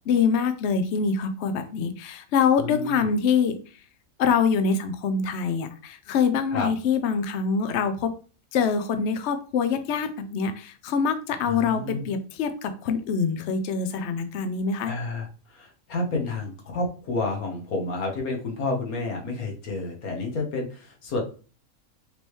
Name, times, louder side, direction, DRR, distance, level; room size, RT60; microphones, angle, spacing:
voice 1, 0.1-3.6 4.2-8.1 8.5-14.9, left 6 dB, 60° left, 9 dB, 0.8 m, -25 dB
voice 2, 2.6-3.1 6.5-6.7 11.5-12.1 14.8-21.2, left 2 dB, 80° left, 1 dB, 1.6 m, -30 dB
5.2 x 3.3 x 3.1 m, 0.37 s
omnidirectional pair, 1.5 m